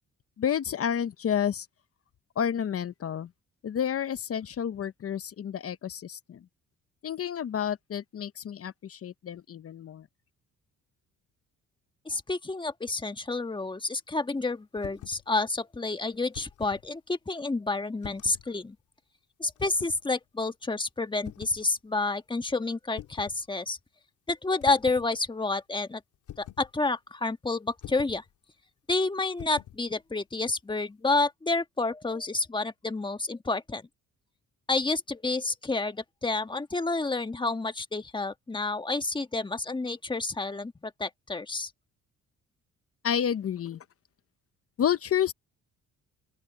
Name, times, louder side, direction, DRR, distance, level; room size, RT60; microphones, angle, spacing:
voice 1, 0.4-1.7 2.4-3.3 3.6-6.4 7.0-10.1 43.0-43.8 44.8-45.3, left 9 dB, 50° left, 0.9 m, -30 dB
voice 2, 12.0-18.7 19.4-23.8 24.3-26.0 26.4-28.2 28.9-33.8 34.7-41.7, left 3 dB, 15° left, 1.5 m, -29 dB
sound 1, 14.8-15.2 16.1-16.8 18.0-18.5 19.6-20.0 21.2-21.6 23.0-23.4 24.6-25.1 26.3-26.7 27.8-28.2 29.4-29.8, left 12 dB, 80° left, 3.2 m, -44 dB
open air
cardioid pair, 90°, 30 cm